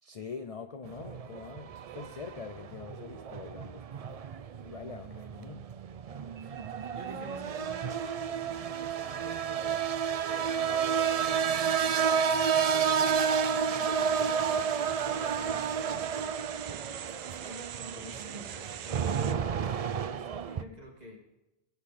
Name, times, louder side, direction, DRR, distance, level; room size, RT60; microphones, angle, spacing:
voice 1, 0.0-4.2 4.6-5.7, left 5 dB, 45° left, 8 dB, 0.5 m, -44 dB
sound 1, 0.8-20.6, right 7 dB, 65° right, 0.3 m, -31 dB
voice 2, 6.3-11.9 12.1-16.4 17.0-21.2, equal, 35° right, -1 dB, 2.4 m, -49 dB
sound 2, 13.0-19.3, right 9 dB, 85° right, 1.0 m, -44 dB
19.5 x 8.1 x 4.2 m, 0.98 s
omnidirectional pair, 1.2 m